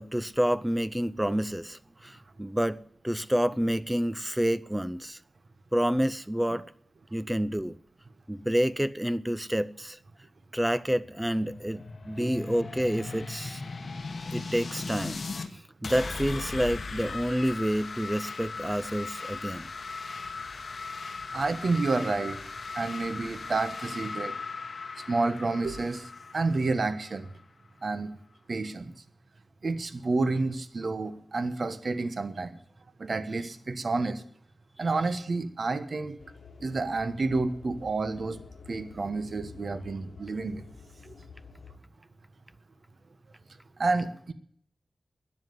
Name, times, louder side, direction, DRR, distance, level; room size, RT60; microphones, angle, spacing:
voice 1, 0.0-5.2 5.7-6.7 7.1-7.8 8.3-10.0 10.5-13.6 14.3-15.2 15.5-19.7, equal, 10° right, 0.5 m, -28 dB
sound 1, 10.8-15.5 15.8-27.4, left 4 dB, 55° left, 1.2 m, -38 dB
voice 2, 21.3-22.4 22.7-24.4 25.1-27.3 27.8-28.1 28.5-28.9 29.6-32.6 33.0-34.2 34.8-36.2 36.6-38.4 38.7-40.6 41.1-41.2 43.8-44.3, right 3 dB, 55° right, 1.2 m, -29 dB
sound 2, 36.2-41.8, left 5 dB, 85° left, 1.2 m, -49 dB
13.0 x 9.9 x 9.5 m
wide cardioid pair, 100°, 0 cm